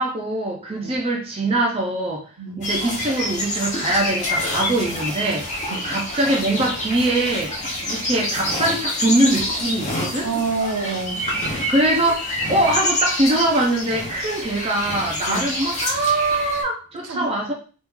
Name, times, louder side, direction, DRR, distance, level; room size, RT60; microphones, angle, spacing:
voice 1, 0.0-2.2 2.6-7.5 7.9-10.3 11.7-17.5, right 1 dB, 25° right, 0 dB, 0.5 m, -22 dB
sound 1, 2.6-16.6, left 1 dB, 30° left, 0.8 m, -27 dB
voice 2, 10.2-11.3 15.3-15.5 17.0-17.3, right 4 dB, 80° right, 3 dB, 0.7 m, -27 dB
3.1 x 2.5 x 3.4 m, 0.36 s
head